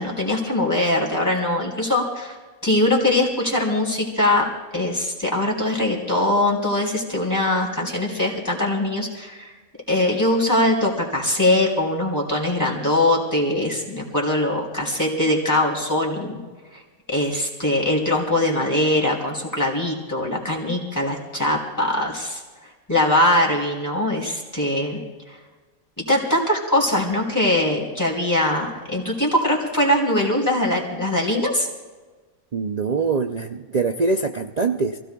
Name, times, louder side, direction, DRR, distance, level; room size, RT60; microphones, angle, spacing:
voice 1, 0.0-2.3 2.6-9.5 9.9-16.4 16.7-16.8 17.1-25.4 26.0-31.7, left 1 dB, 10° left, -2 dB, 3.4 m, -22 dB
voice 2, 32.5-35.0, right 4 dB, 60° right, 5 dB, 0.4 m, -23 dB
27.5 x 16.5 x 2.3 m, 1.3 s
omnidirectional pair, 1.5 m